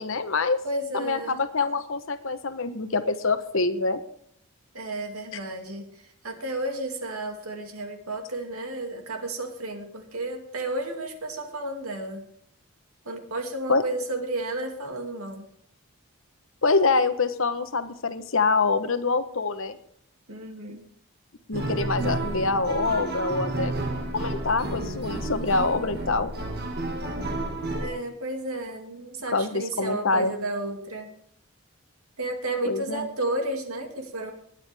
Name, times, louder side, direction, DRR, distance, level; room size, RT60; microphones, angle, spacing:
voice 1, 0.0-0.6 0.9-4.0 13.7-13.8 16.6-19.8 21.5-23.7 24.1-26.3 29.3-30.3 32.6-33.1, left 3 dB, 65° left, 11 dB, 1.0 m, -25 dB
voice 2, 0.6-1.4 4.7-12.2 13.0-15.4 20.3-20.9 27.8-31.1 32.2-34.3, right 2 dB, 85° right, 4 dB, 2.5 m, -32 dB
sound 1, 21.5-27.9, right 2 dB, 45° right, 1.9 m, -31 dB
20.5 x 9.3 x 3.5 m, 0.67 s
head